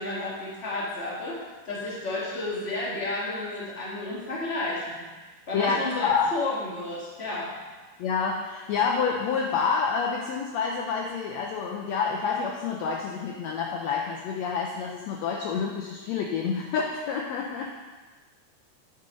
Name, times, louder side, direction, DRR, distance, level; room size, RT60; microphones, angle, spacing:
voice 1, 0.0-1.4 1.7-5.0 5.5-7.5, left 2 dB, 25° left, -6 dB, 1.8 m, -32 dB
voice 2, 5.5-6.3 8.0-17.7, left 5 dB, 75° left, 0 dB, 1.6 m, -28 dB
9.2 x 5.6 x 5.2 m, 1.3 s
omnidirectional pair, 3.7 m